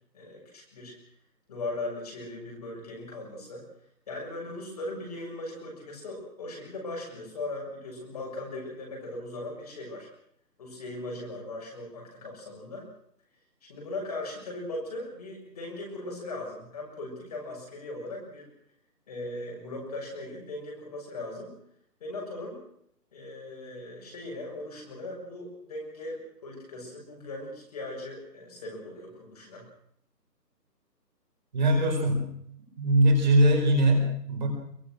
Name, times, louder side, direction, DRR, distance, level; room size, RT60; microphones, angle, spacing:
voice 1, 0.1-1.0 1.5-3.7 4.1-10.1 10.6-12.9 13.7-18.5 19.1-21.6 22.0-22.6 23.1-29.7, left 2 dB, 20° left, -1 dB, 6.7 m, -38 dB
voice 2, 31.5-32.3 32.8-34.5, right 1 dB, 25° right, 3 dB, 5.0 m, -21 dB
24.0 x 22.5 x 6.4 m, 0.69 s
hypercardioid pair, 175°, 50 cm